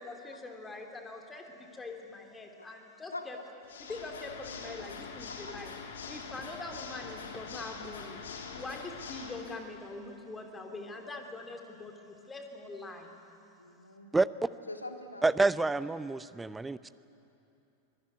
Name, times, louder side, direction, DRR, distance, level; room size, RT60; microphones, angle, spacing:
voice 1, 0.0-3.4 3.9-5.7 6.1-8.2 8.5-13.1, left 2 dB, 15° left, 4 dB, 3.1 m, -43 dB
Water / Mechanisms, 3.6-9.6, left 5 dB, 65° left, 2.6 m, -44 dB
voice 2, 13.6-14.1 14.7-15.5, left 2 dB, 80° left, 5 dB, 2.2 m, -44 dB
voice 3, 15.2-16.8, right 3 dB, 10° right, 17 dB, 0.6 m, -27 dB
24.5 x 22.5 x 9.6 m, 2.9 s
figure-of-eight pair, 90°, 0 cm